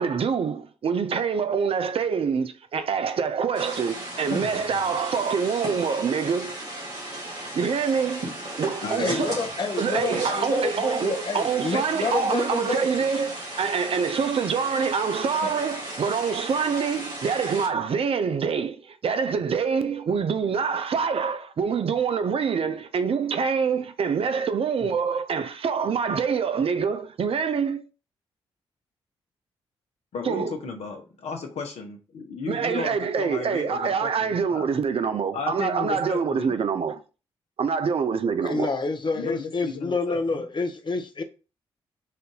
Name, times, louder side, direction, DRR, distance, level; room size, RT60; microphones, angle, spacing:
voice 1, 0.0-6.5 7.5-8.3 8.6-9.4 9.8-27.8 30.2-30.6 32.5-37.0 37.6-38.7, right 6 dB, 50° right, 0.6 m, -25 dB
sound 1, 3.5-17.7, right 1 dB, 80° right, 2.0 m, -36 dB
voice 2, 4.3-4.8 8.8-9.1 15.4-15.5 24.8-24.9 30.1-34.7 35.3-36.5 39.1-40.4, left 4 dB, 65° left, 1.0 m, -34 dB
voice 3, 9.0-13.2 38.4-41.2, left 3 dB, 40° left, 0.9 m, -28 dB
4.3 x 2.6 x 3.7 m
hypercardioid pair, 40°, 12 cm